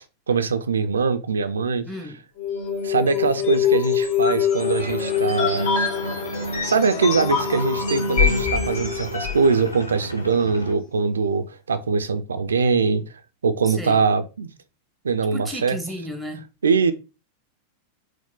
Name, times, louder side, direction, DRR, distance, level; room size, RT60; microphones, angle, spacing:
voice 1, 0.0-1.9 2.8-5.9 6.6-13.0 13.4-14.5 15.0-15.8 16.6-16.9, right 5 dB, 70° right, 0.4 m, -22 dB
voice 2, 1.9-2.2 13.6-14.0 15.3-16.4, equal, ahead, 0.8 m, -33 dB
sound 1, 2.4-9.5, left 6 dB, 55° left, 2.1 m, -24 dB
sound 2, 4.6-10.7, left 1 dB, 90° left, 0.6 m, -35 dB
4.6 x 2.1 x 3.7 m
figure-of-eight pair, 90°, 0 cm